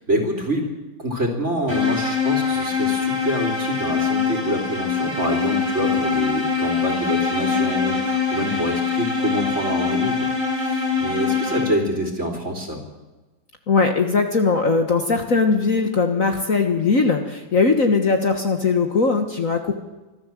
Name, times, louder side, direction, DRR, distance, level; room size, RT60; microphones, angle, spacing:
voice 1, 0.1-10.3 10.5-12.8, equal, 35° right, 4 dB, 3.7 m, -26 dB
sound 1, 1.7-12.0, left 5 dB, 10° left, 4.3 m, -23 dB
voice 2, 13.7-19.7, left 4 dB, 45° left, 5 dB, 1.7 m, -20 dB
25.0 x 14.5 x 7.6 m, 1.2 s
omnidirectional pair, 2.1 m